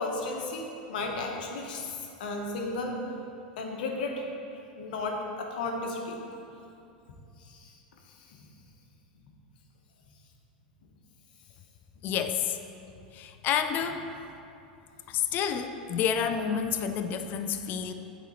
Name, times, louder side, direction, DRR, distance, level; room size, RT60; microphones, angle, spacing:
voice 1, 0.0-1.9 2.2-2.9 3.6-4.3 4.8-6.2 7.5-7.7, left 2 dB, 70° left, 1 dB, 1.0 m, -33 dB
voice 2, 12.0-12.6 13.1-14.1 15.1-17.9, left 8 dB, 40° left, 8 dB, 0.4 m, -29 dB
8.0 x 4.2 x 4.1 m, 2.7 s
hypercardioid pair, 95°, 5 cm